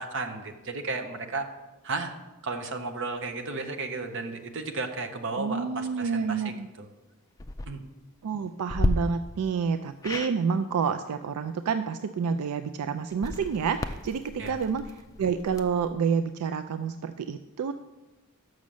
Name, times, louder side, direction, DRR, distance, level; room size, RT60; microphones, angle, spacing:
voice 1, 0.0-1.5 1.8-2.1 2.4-6.9 7.7-7.8 14.4-14.6, right 3 dB, 55° right, 7 dB, 0.8 m, -34 dB
voice 2, 5.4-6.7 8.2-14.9 15.2-17.7, right 6 dB, 85° right, 10 dB, 0.4 m, -29 dB
sound 1, 7.3-7.7 8.7-8.9 10.0-10.3 13.1-15.9, left 2 dB, 15° left, 0.3 m, -33 dB
6.3 x 6.2 x 7.0 m, 1.1 s
head